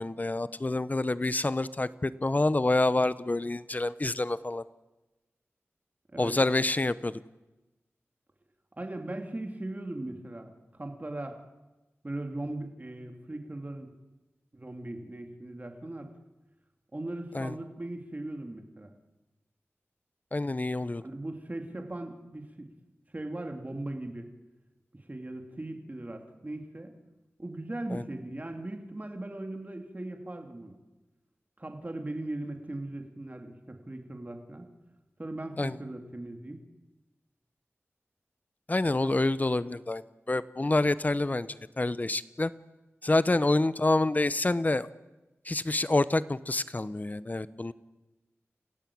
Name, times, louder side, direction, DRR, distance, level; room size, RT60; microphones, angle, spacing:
voice 1, 0.0-4.6 6.2-7.1 17.3-17.5 20.3-21.0 27.9-28.0 35.6-35.7 38.7-40.0 40.3-42.5 43.0-44.9 45.5-47.7, left 2 dB, 35° left, 16 dB, 0.9 m, -27 dB
voice 2, 8.8-10.5 10.8-11.4 12.0-13.9 14.5-16.1 16.9-18.9 21.0-22.7 23.1-24.3 25.1-26.9 27.4-30.8 31.6-34.7 35.2-36.6 39.0-39.1, right 1 dB, 35° right, 4 dB, 3.0 m, -38 dB
29.5 x 15.5 x 8.7 m, 1.1 s
wide cardioid pair, 65°, 5 cm